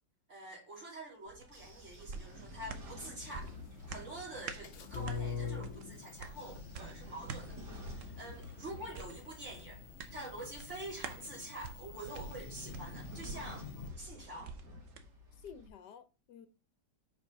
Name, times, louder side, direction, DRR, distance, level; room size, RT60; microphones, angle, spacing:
voice 1, 0.3-3.5 3.9-7.6 7.9-9.8 10.1-13.7 14.0-14.5, right 1 dB, 40° right, 3.2 m, -46 dB
Train / Sliding door, 1.3-5.3 6.1-11.0 11.8-15.7, left 1 dB, 75° right, 2.3 m, -51 dB
sound 1, 1.4-15.1 15.5-15.6, right 5 dB, 55° right, 1.0 m, -49 dB
sound 2, 3.2-13.9, left 5 dB, 60° left, 0.9 m, -46 dB
voice 2, 8.0-8.3 15.4-16.5, left 7 dB, 75° left, 1.4 m, -53 dB
5.3 x 5.2 x 6.4 m
omnidirectional pair, 1.8 m